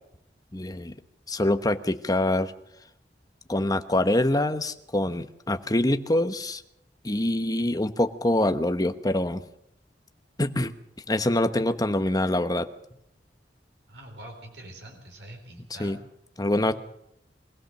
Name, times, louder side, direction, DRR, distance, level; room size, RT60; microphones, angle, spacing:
voice 1, 0.5-0.9 1.3-2.5 3.5-6.6 7.0-9.4 10.4-10.7 11.1-12.7 15.8-16.0 16.4-16.7, left 1 dB, 20° left, 9 dB, 1.1 m, -25 dB
voice 2, 13.9-16.0 16.6-16.7, right 1 dB, 80° right, 3 dB, 4.2 m, -44 dB
24.0 x 16.5 x 6.6 m, 0.75 s
head